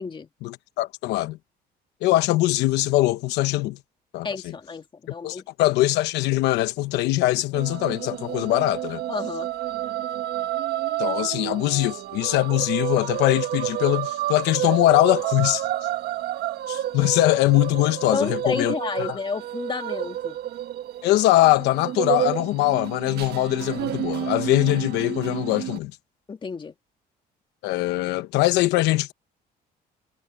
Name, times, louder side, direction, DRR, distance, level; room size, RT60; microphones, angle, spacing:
voice 1, 0.4-1.4 2.0-3.8 4.1-4.3 5.2-9.0 11.0-15.7 16.7-18.7 19.0-19.2 21.0-25.9 27.6-29.1, left 17 dB, 90° left, 0.9 m, -22 dB
voice 2, 4.2-5.4 9.1-9.5 18.1-20.4 26.3-26.7, left 5 dB, 30° left, 2.4 m, -30 dB
sound 1, 7.5-25.8, right 13 dB, 70° right, 1.3 m, -30 dB
cardioid pair, 110°, 17 cm